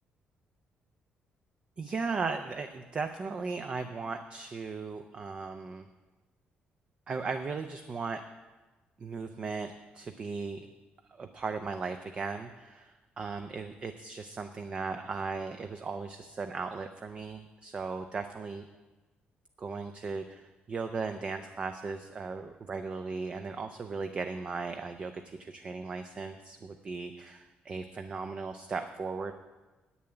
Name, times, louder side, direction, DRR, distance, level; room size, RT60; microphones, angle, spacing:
voice 1, 1.8-5.9 7.1-8.2 9.0-10.7 11.1-18.6 19.6-29.3, right 4 dB, 30° right, 7 dB, 0.5 m, -37 dB
8.9 x 7.0 x 8.8 m, 1.2 s
cardioid pair, 170°, 4 cm